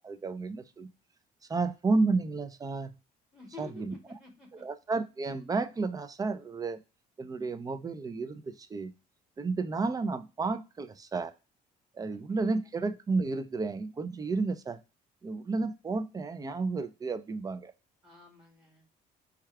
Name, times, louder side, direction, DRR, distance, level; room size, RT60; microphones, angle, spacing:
voice 1, 0.0-0.9 1.5-2.9 3.6-3.9 4.6-6.8 7.2-8.9 9.4-11.3 11.9-14.8 15.2-17.7, right 3 dB, 20° right, 12 dB, 0.4 m, -32 dB
voice 2, 3.3-4.6 18.0-18.9, left 4 dB, 5° right, 1 dB, 2.1 m, -50 dB
4.5 x 2.4 x 4.6 m, 0.29 s
cardioid pair, 110°, 17 cm